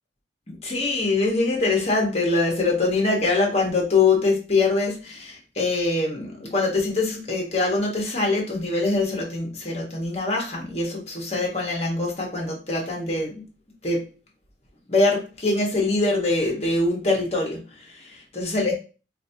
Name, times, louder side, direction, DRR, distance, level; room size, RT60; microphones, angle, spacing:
voice 1, 0.5-13.5 13.8-14.0 14.9-18.7, left 3 dB, 35° left, 0 dB, 1.3 m, -23 dB
5.2 x 2.7 x 2.8 m, 0.34 s
head